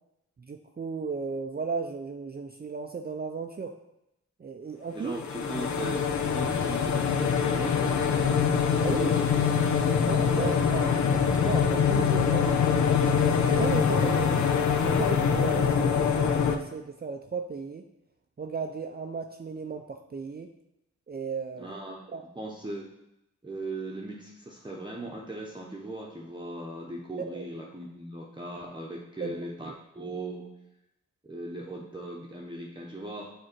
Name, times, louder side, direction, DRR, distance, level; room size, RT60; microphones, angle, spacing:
voice 1, 0.4-3.7 4.4-5.1 8.8-9.1 10.0-10.9 11.1-12.9 13.5-14.4 14.8-17.8 18.4-20.5 21.1-21.7 22.1-22.2 27.3-27.5 29.2-29.4, right 5 dB, 30° right, 4 dB, 0.5 m, -35 dB
voice 2, 4.9-8.4 9.0-11.0 21.6-22.0 22.3-22.9 23.4-30.5 31.2-33.3, right 2 dB, 15° right, -3 dB, 0.9 m, -39 dB
sound 1, 5.1-16.6, left 6 dB, 65° left, 0.6 m, -24 dB
6.3 x 3.6 x 4.5 m, 0.85 s
supercardioid pair, 40°, 31 cm